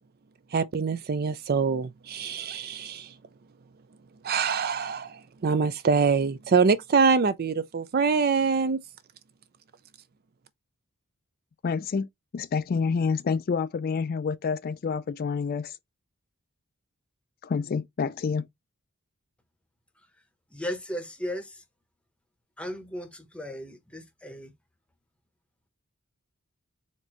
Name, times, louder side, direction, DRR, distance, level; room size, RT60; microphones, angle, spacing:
voice 1, 0.5-3.1 4.2-8.8, right 5 dB, 45° right, 0.4 m, -24 dB
voice 2, 11.6-12.1 12.3-15.8 17.4-18.5, left 5 dB, 45° left, 0.3 m, -28 dB
voice 3, 20.5-21.4 22.6-23.1 23.3-24.5, equal, 5° left, 0.8 m, -35 dB
4.4 x 2.6 x 4.4 m
head